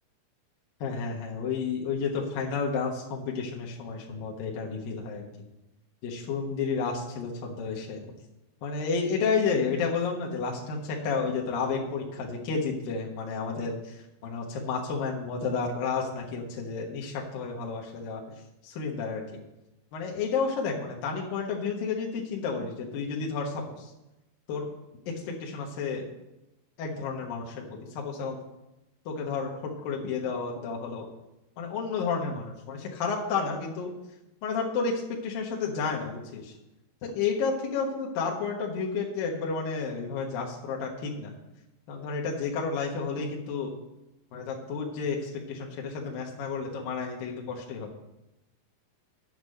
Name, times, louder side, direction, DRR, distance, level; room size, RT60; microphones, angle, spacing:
voice 1, 0.8-5.2 6.0-8.1 8.6-18.2 18.6-19.4 19.9-23.9 24.5-24.6 25.1-26.0 26.8-27.6 28.0-28.4 29.1-31.1 31.6-33.9 34.4-36.5 37.0-41.3 41.9-43.7 44.3-47.9, left 5 dB, 65° left, -1 dB, 2.6 m, -31 dB
8.2 x 6.9 x 7.7 m, 0.93 s
omnidirectional pair, 5.1 m